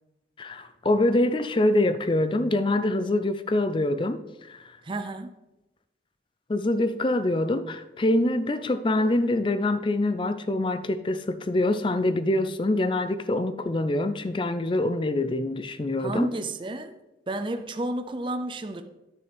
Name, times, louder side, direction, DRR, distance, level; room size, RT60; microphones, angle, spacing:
voice 1, 0.4-4.6 6.5-16.3, left 1 dB, 25° left, 0.4 m, -25 dB
voice 2, 4.8-5.4 16.0-16.9 17.3-18.8, right 1 dB, 25° right, 0.5 m, -31 dB
10.5 x 6.5 x 3.4 m
head